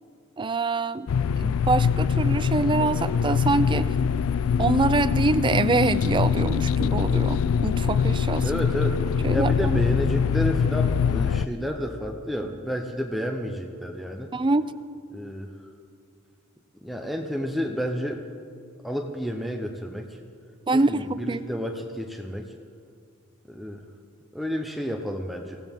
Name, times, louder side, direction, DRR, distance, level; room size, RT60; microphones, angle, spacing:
voice 1, 0.4-1.1 1.4-3.9 4.6-8.5 9.2-9.8 14.3-14.7 20.7-21.4, right 3 dB, 25° right, 14 dB, 0.4 m, -25 dB
sound 1, 1.1-11.5, left 6 dB, 75° left, 0.4 m, -23 dB
voice 2, 8.4-9.0 9.3-14.3 15.1-15.5 16.8-18.2 18.8-20.2 20.7-22.5 23.5-23.8 24.3-25.6, equal, ahead, 2 dB, 0.7 m, -30 dB
24.0 x 16.5 x 3.6 m, 2.3 s
head